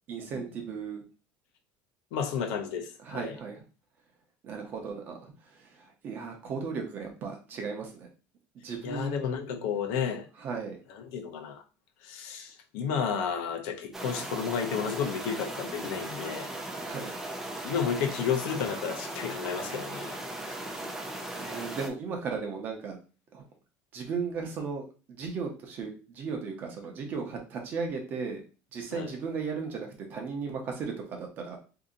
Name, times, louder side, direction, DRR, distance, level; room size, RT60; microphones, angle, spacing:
voice 1, 0.1-1.0 3.0-3.6 4.4-8.1 8.6-9.7 10.4-10.8 16.8-17.1 21.4-23.0 23.3-23.4 23.9-28.4 28.7-31.6, right 5 dB, 30° right, 0.7 m, -36 dB
voice 2, 2.1-3.3 8.8-10.3 10.9-11.6 12.0-16.5 17.6-20.2 28.9-29.1, left 7 dB, 70° left, 0.7 m, -32 dB
sound 1, 13.9-21.9, right 1 dB, 5° right, 0.4 m, -38 dB
2.8 x 2.6 x 3.7 m
cardioid pair, 180°, 6 cm